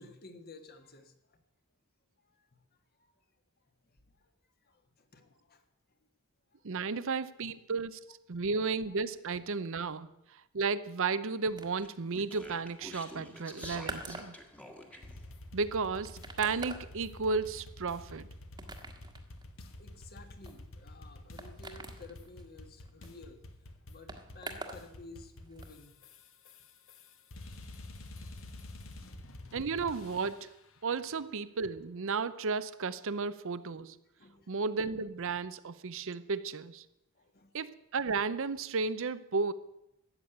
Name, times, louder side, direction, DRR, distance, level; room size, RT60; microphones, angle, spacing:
voice 1, 0.0-1.4 2.2-2.6 3.0-3.1 3.8-4.3 4.6-5.6 6.7-6.8 8.8-8.9 19.6-23.4 23.8-26.0 28.3-28.4 28.6-28.7 31.1-31.2 34.2-34.5 37.1-37.5, left 3 dB, 45° left, 1.5 m, -54 dB
voice 2, 6.6-8.0 8.3-10.1 10.5-14.3 15.5-18.3 29.5-30.5 30.8-34.0 34.5-36.8 37.5-39.5, right 4 dB, 60° right, 0.7 m, -33 dB
sound 1, 11.6-24.9 25.1-25.8, right 3 dB, 20° right, 1.4 m, -47 dB
Speech, 11.8-15.2, left 1 dB, 5° left, 1.5 m, -48 dB
sound 2, 15.0-30.6, left 1 dB, 60° left, 1.4 m, -49 dB
13.5 x 8.3 x 9.1 m
head